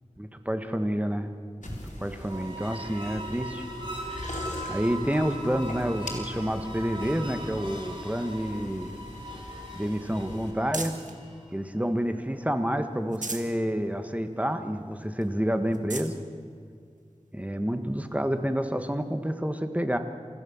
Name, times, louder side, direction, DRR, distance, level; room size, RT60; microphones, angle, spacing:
voice 1, 0.2-1.3 1.6-3.7 4.7-8.9 9.7-11.0 11.5-16.2 17.3-20.0, equal, 10° right, 7 dB, 1.6 m, -29 dB
sound 1, 1.6-10.5, left 1 dB, 85° left, 4.2 m, -42 dB
sound 2, 2.1-11.5, right 1 dB, 40° right, 4.3 m, -40 dB
sound 3, 8.5-11.2 11.7-12.5 12.9-13.6 14.0-14.1 14.5-14.6 15.2-15.3 15.7-16.2 17.0-17.1 18.8-18.9, right 3 dB, 85° right, 1.7 m, -40 dB
28.0 x 15.5 x 7.3 m, 2.2 s
wide cardioid pair, 60°, 13 cm